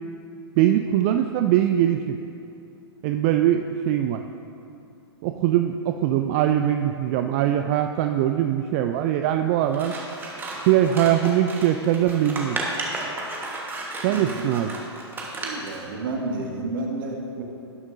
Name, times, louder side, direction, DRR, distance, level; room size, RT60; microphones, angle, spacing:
voice 1, 0.6-2.2 3.0-4.2 5.2-9.9 10.6-12.6 14.0-14.7, right 11 dB, 30° right, 7 dB, 0.4 m, -22 dB
Scissors, 9.7-15.8, right 2 dB, 15° right, 1.3 m, -33 dB
voice 2, 14.0-14.4 15.4-17.4, right 2 dB, 50° right, 0 dB, 1.9 m, -31 dB
18.0 x 9.5 x 2.6 m, 2.7 s
figure-of-eight pair, 110°, 14 cm